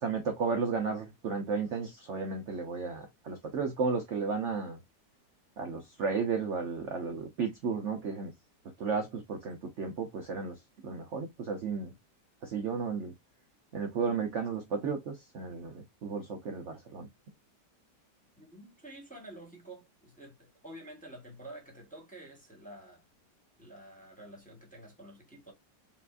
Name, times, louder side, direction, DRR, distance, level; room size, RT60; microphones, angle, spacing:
voice 1, 0.0-4.8 5.6-8.3 8.8-11.9 12.4-13.1 13.7-17.1, right 5 dB, 55° right, 0.9 m, -33 dB
voice 2, 18.4-23.0 23.6-25.5, right 1 dB, 5° left, 1.3 m, -49 dB
5.6 x 2.5 x 2.5 m
omnidirectional pair, 1.9 m